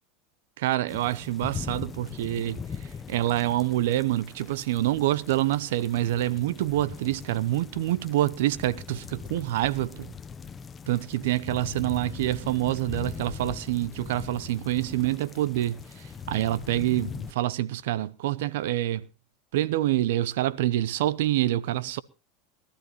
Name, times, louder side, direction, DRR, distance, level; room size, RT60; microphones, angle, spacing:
voice 1, 0.6-2.6 3.1-10.1 10.9-15.8 16.3-19.1 19.5-22.0, right 14 dB, 75° right, 0.7 m, -26 dB
sound 1, 0.9-17.3, left 6 dB, 25° left, 0.9 m, -40 dB
21.5 x 13.0 x 3.1 m
supercardioid pair, 115°, 0 cm